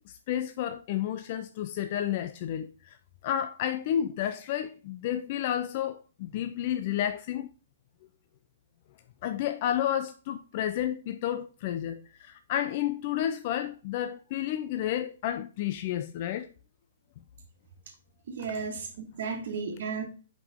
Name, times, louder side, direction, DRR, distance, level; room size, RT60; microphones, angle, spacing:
voice 1, 0.1-3.0 3.2-7.5 9.2-16.5, left 11 dB, 35° left, 0.4 m, -31 dB
voice 2, 18.3-20.0, right 5 dB, 50° right, 1.6 m, -34 dB
7.1 x 5.1 x 3.6 m
hypercardioid pair, 165°, 0 cm